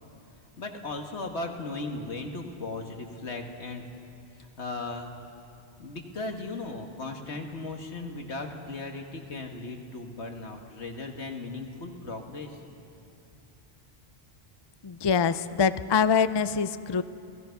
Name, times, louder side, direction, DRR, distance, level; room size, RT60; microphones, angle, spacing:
voice 1, 0.6-3.8 4.3-5.1 5.8-12.6, left 3 dB, 85° left, 3 dB, 1.9 m, -37 dB
voice 2, 14.8-17.0, left 6 dB, 40° left, 13 dB, 0.4 m, -24 dB
27.5 x 17.0 x 5.9 m, 2.6 s
omnidirectional pair, 1.1 m